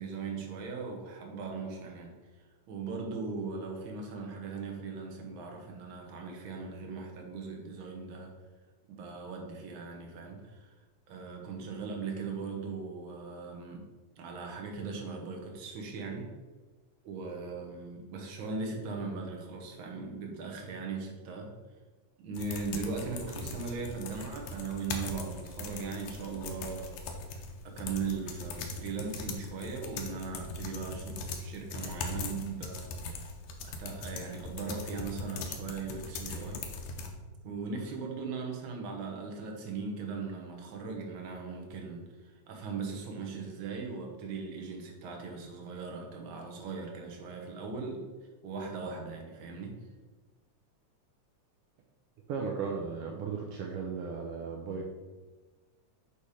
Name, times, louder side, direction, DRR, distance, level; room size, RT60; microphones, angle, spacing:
voice 1, 0.0-2.1 2.7-8.3 8.9-10.7 11.1-13.8 14.2-16.3 17.0-21.5 22.2-27.0 27.3-27.4 27.8-33.3 33.6-36.6 37.4-48.0 48.4-49.7, right 4 dB, 60° right, 1 dB, 1.5 m, -39 dB
sound 1, 22.4-37.1, left 3 dB, 85° left, 2.2 m, -40 dB
voice 2, 52.3-55.0, right 5 dB, 80° right, 0 dB, 1.3 m, -36 dB
8.3 x 3.3 x 4.9 m, 1.3 s
omnidirectional pair, 3.3 m